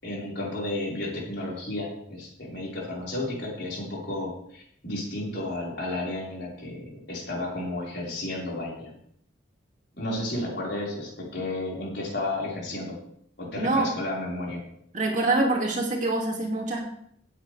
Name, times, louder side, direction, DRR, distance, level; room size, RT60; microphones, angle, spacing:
voice 1, 0.0-8.9 10.0-13.0 13.4-14.6, left 1 dB, 55° left, -4 dB, 4.9 m, -32 dB
voice 2, 13.6-13.9 14.9-16.9, right 2 dB, 40° right, 0 dB, 2.4 m, -25 dB
17.0 x 8.8 x 3.4 m, 0.68 s
head